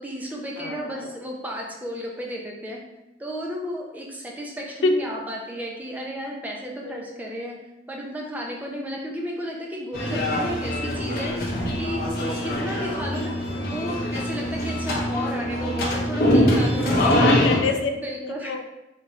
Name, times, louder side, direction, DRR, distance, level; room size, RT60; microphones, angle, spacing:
voice 1, 0.0-2.8 3.2-7.5 7.9-11.5 11.8-12.0 12.4-17.4 17.9-18.5, equal, 10° right, -2 dB, 0.5 m, -33 dB
voice 2, 0.6-1.1 4.8-5.1 6.8-7.2 17.1-17.9 18.2-18.6, left 3 dB, 85° left, 6 dB, 0.4 m, -26 dB
sound 1, 9.9-17.6, left 1 dB, 55° left, 0.7 m, -23 dB
3.5 x 2.7 x 3.1 m, 0.94 s
head